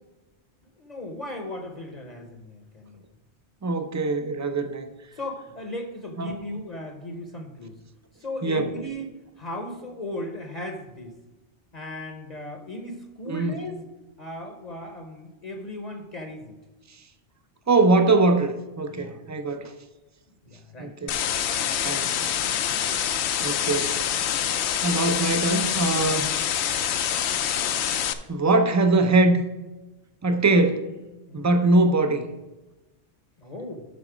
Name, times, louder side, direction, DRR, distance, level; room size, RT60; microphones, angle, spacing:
voice 1, 0.8-3.0 5.1-7.8 8.2-9.1 9.4-11.2 11.7-13.8 14.2-16.6 18.9-19.6 20.5-20.9 21.4-21.7 31.3-31.5 33.4-33.9, left 1 dB, 40° left, 4 dB, 0.9 m, -37 dB
voice 2, 3.6-4.9 6.2-6.4 8.4-8.7 13.3-13.6 17.7-19.7 20.8-21.2 21.8-22.3 23.4-24.0 24.8-26.3 28.3-29.4 30.2-30.9 31.3-32.3, right 2 dB, 20° right, 7 dB, 0.5 m, -22 dB
sound 1, 21.1-28.1, left 9 dB, 75° left, 0.9 m, -26 dB
12.0 x 4.1 x 5.0 m, 1.1 s
omnidirectional pair, 1.2 m